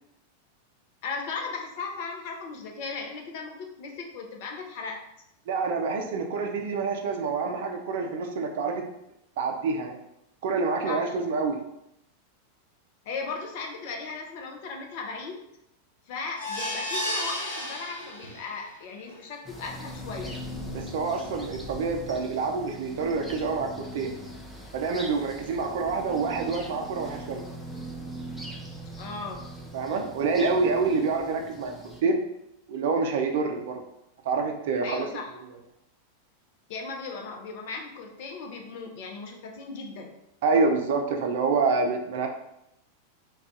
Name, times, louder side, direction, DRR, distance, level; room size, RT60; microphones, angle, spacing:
voice 1, 1.0-5.0 10.8-11.1 13.1-15.4 16.1-20.3 29.0-29.5 30.8-30.9 34.8-35.3 36.7-40.1, left 4 dB, 50° left, 2 dB, 0.5 m, -37 dB
voice 2, 5.5-8.8 9.4-10.0 10.4-11.6 20.7-24.1 24.7-27.4 29.7-32.2 32.7-33.8 34.2-35.1 40.4-42.3, right 4 dB, 55° right, 3 dB, 0.4 m, -27 dB
sound 1, 16.4-18.6 19.1-19.2 19.5-19.6, left 1 dB, 70° left, 0.9 m, -32 dB
sound 2, 19.4-32.0, equal, 5° left, 0.5 m, -40 dB
2.3 x 2.3 x 3.7 m, 0.82 s
figure-of-eight pair, 90°, 0 cm